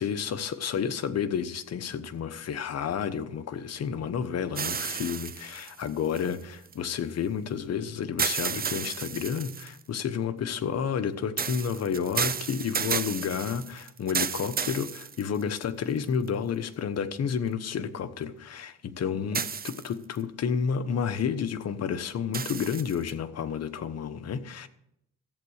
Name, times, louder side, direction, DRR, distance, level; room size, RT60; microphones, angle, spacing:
voice 1, 0.0-24.7, left 7 dB, 55° left, 1.2 m, -31 dB
sound 1, 4.5-6.7 8.2-9.8 11.4-15.6 16.3-16.4 19.3-20.2 22.3-23.1, right 6 dB, 30° right, 0.7 m, -32 dB
14.0 x 8.1 x 6.5 m
cardioid pair, 90°, 30 cm